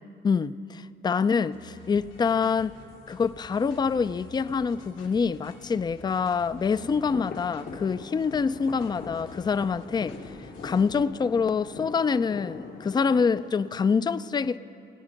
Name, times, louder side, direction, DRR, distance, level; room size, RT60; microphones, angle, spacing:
voice 1, 0.2-2.7 3.1-10.2 10.6-14.6, left 5 dB, 20° left, 0.3 m, -26 dB
sound 1, 1.5-11.1, left 2 dB, 85° left, 2.5 m, -50 dB
sound 2, 6.7-13.3, left 4 dB, 50° left, 1.1 m, -42 dB
20.0 x 8.8 x 5.1 m
cardioid pair, 90°, 20 cm